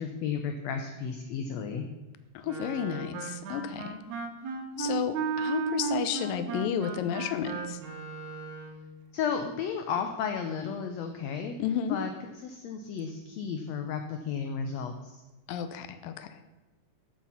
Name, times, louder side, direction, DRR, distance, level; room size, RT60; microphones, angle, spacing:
voice 1, 0.0-1.8 9.1-11.5 11.9-12.1 12.4-15.2, left 6 dB, 70° left, 6 dB, 1.7 m, -33 dB
voice 2, 2.3-4.0 4.8-7.8 11.6-12.0 15.5-16.4, left 8 dB, 85° left, 11 dB, 2.5 m, -32 dB
Wind instrument woodwind instrument, 2.5-8.8, right 4 dB, 65° right, 2.6 m, -34 dB
14.5 x 7.3 x 5.7 m, 1.2 s
omnidirectional pair, 3.9 m